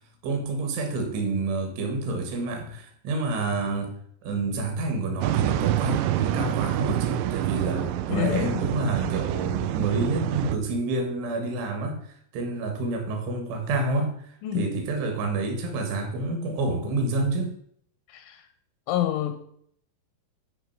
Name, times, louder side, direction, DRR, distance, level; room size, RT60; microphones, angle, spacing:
voice 1, 0.2-3.9 4.2-12.0 12.3-14.2 14.5-17.6, right 3 dB, 70° right, 4 dB, 3.8 m, -28 dB
sound 1, 5.2-10.6, right 13 dB, 85° right, 2.6 m, -27 dB
voice 2, 8.1-8.7 14.4-14.7 18.1-18.5 18.9-19.5, left 11 dB, 85° left, 8 dB, 2.8 m, -28 dB
12.0 x 4.9 x 4.7 m, 0.67 s
omnidirectional pair, 5.9 m